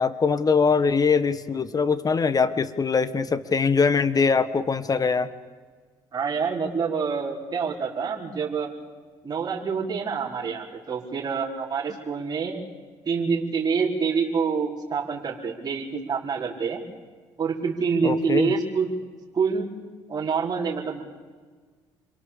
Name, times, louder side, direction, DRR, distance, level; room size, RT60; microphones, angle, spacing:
voice 1, 0.0-5.3 18.0-18.5, left 5 dB, 35° left, 13 dB, 1.5 m, -22 dB
voice 2, 6.1-8.7 9.2-12.6 13.0-16.8 17.4-18.9 19.3-19.7 20.1-21.0, right 5 dB, 35° right, -4 dB, 4.6 m, -26 dB
27.5 x 23.0 x 7.2 m, 1.5 s
hypercardioid pair, 60°, 11 cm